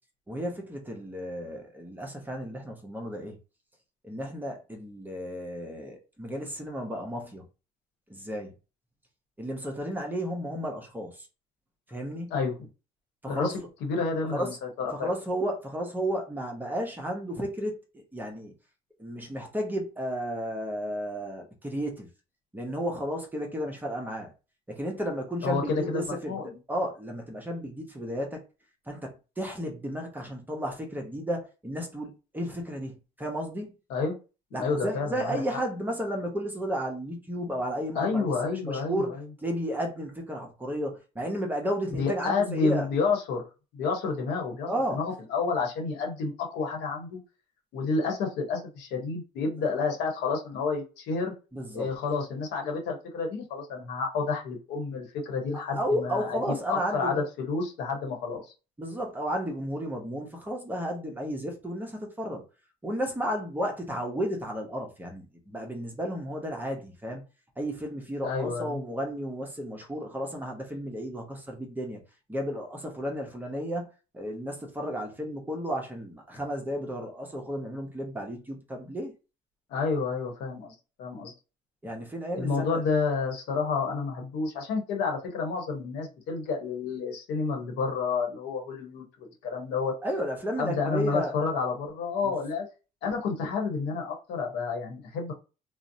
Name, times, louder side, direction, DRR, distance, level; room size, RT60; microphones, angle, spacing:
voice 1, 0.3-3.4 4.0-7.4 8.1-8.5 9.4-11.3 11.9-12.3 13.2-13.5 14.3-14.5 14.9-18.5 19.0-22.1 22.5-24.3 24.7-28.4 28.9-33.7 34.5-42.9 44.7-45.0 49.6-49.7 51.5-51.9 55.5-57.3 58.8-62.4 62.8-67.2 67.6-72.0 72.3-79.1 81.8-82.8 90.0-91.3 92.2-92.3, equal, 10° right, 0.7 m, -33 dB
voice 2, 13.8-15.1 25.4-26.6 33.9-34.2 34.5-35.4 37.9-39.2 42.0-43.4 43.7-47.2 47.7-51.3 51.7-58.4 68.2-68.8 79.7-81.3 82.3-89.9 90.6-92.7 93.0-95.3, left 4 dB, 85° left, 0.9 m, -30 dB
2.6 x 2.0 x 2.6 m
cardioid pair, 110°, 17 cm